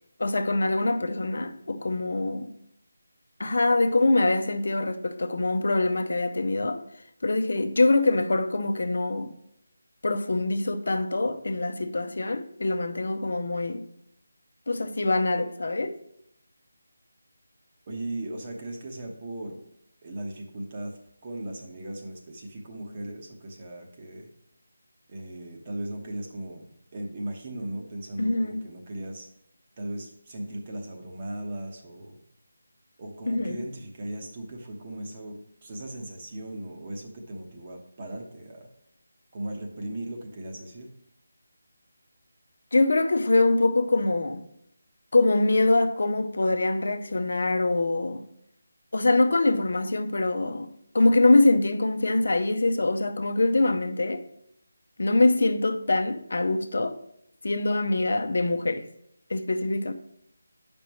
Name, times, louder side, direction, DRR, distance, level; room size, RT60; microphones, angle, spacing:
voice 1, 0.2-2.5 3.4-6.8 7.2-9.3 10.0-13.8 14.7-16.0 28.2-28.6 33.3-33.6 42.7-44.4 45.1-48.2 48.9-50.7 50.9-54.2 55.0-57.0 57.4-58.9 59.3-59.9, left 2 dB, 65° left, 0.7 m, -24 dB
voice 2, 17.9-19.6 20.0-21.0 21.2-24.3 25.1-29.3 29.8-32.2 33.0-38.7 39.3-40.9, right 1 dB, 30° right, 1.1 m, -37 dB
8.2 x 5.3 x 3.1 m
figure-of-eight pair, 165°, 0 cm